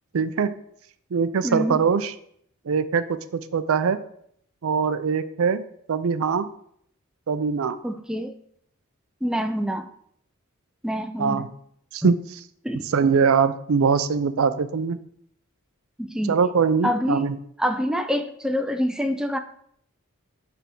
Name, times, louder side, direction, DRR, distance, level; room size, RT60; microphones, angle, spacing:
voice 1, 0.1-0.5 1.1-2.1 2.7-4.0 4.6-5.6 5.9-6.5 7.3-7.8 11.2-11.5 11.9-12.1 12.9-15.0 16.3-17.4, right 5 dB, 70° right, 13 dB, 0.5 m, -22 dB
voice 2, 1.4-1.8 7.8-8.3 9.2-9.9 10.8-11.5 12.0-12.1 12.6-12.9 16.0-16.4 16.8-17.3 17.6-19.4, equal, 5° right, 7 dB, 0.4 m, -26 dB
9.0 x 3.5 x 4.5 m, 0.68 s
head